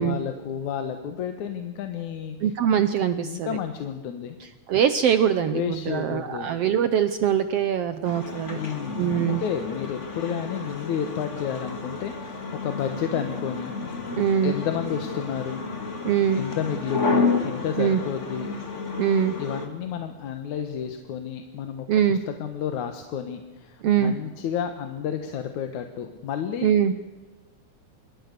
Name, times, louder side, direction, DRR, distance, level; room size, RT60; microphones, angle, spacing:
voice 1, 0.0-2.5 3.2-4.4 5.5-6.5 8.5-13.7 14.4-15.6 16.3-18.5 19.4-26.7, left 8 dB, 65° left, 7 dB, 2.6 m, -31 dB
voice 2, 2.4-3.6 4.4-8.6 9.0-9.4 14.1-14.6 16.0-16.4 17.8-18.0 19.0-19.3 21.9-22.2 23.8-24.1 26.6-26.9, right 9 dB, 80° right, 11 dB, 1.3 m, -23 dB
sound 1, 8.0-19.7, left 4 dB, 25° left, 2.4 m, -31 dB
26.0 x 23.0 x 6.8 m, 1.2 s
omnidirectional pair, 3.9 m